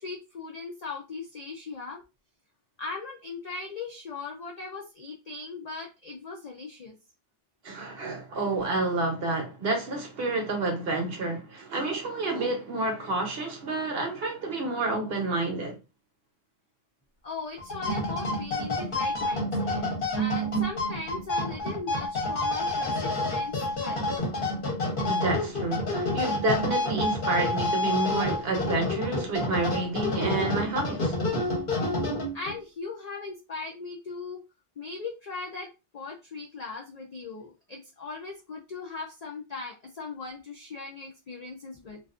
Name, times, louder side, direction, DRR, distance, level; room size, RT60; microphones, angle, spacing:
voice 1, 0.0-2.0 2.8-7.0 17.2-19.9 20.1-24.0 26.1-26.2 32.3-34.4 34.8-42.0, left 4 dB, 70° left, 0.4 m, -39 dB
voice 2, 7.6-15.8 25.1-31.2, right 2 dB, 60° right, 0.9 m, -29 dB
sound 1, 17.6-32.6, left 1 dB, 50° left, 1.0 m, -29 dB
2.4 x 2.4 x 2.4 m
omnidirectional pair, 1.3 m